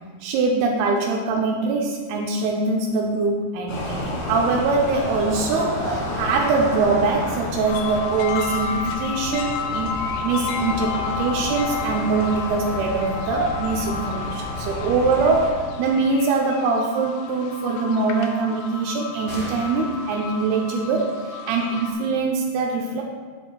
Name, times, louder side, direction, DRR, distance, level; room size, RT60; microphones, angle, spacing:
voice 1, 0.2-23.0, right 4 dB, 85° right, 0 dB, 2.2 m, -23 dB
sound 1, 3.7-15.5, left 1 dB, 60° left, 2.1 m, -31 dB
sound 2, 7.7-21.9, left 6 dB, 85° left, 3.0 m, -32 dB
sound 3, 15.4-15.5 15.8-15.9 16.2-16.7 19.3-20.2, right 1 dB, 30° right, 1.8 m, -37 dB
10.0 x 7.9 x 2.3 m, 1.5 s
omnidirectional pair, 5.2 m